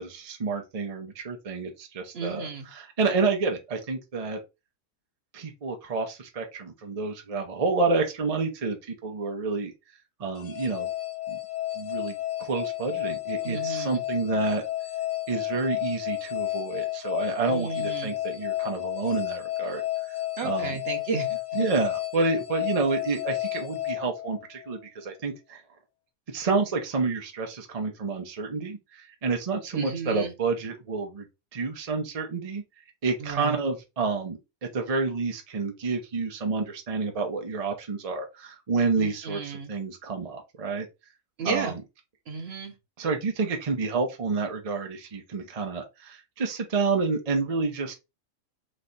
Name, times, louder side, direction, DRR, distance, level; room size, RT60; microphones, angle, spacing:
voice 1, 0.0-4.4 5.3-9.7 10.2-10.9 11.3-11.4 11.8-14.6 15.3-19.8 20.1-20.2 20.4-20.8 21.5-25.6 26.3-31.2 31.5-32.6 33.0-40.9 41.4-41.7 43.0-47.9, right 4 dB, 35° right, 0.6 m, -29 dB
voice 2, 2.1-2.7 13.4-14.0 17.5-18.1 20.4-21.4 29.7-30.3 33.2-33.6 39.0-39.7 41.4-41.7 42.3-42.7, right 5 dB, 50° right, 1.0 m, -33 dB
sound 1, 10.4-24.8, left 15 dB, 55° left, 0.6 m, -32 dB
3.3 x 3.2 x 3.9 m
omnidirectional pair, 1.5 m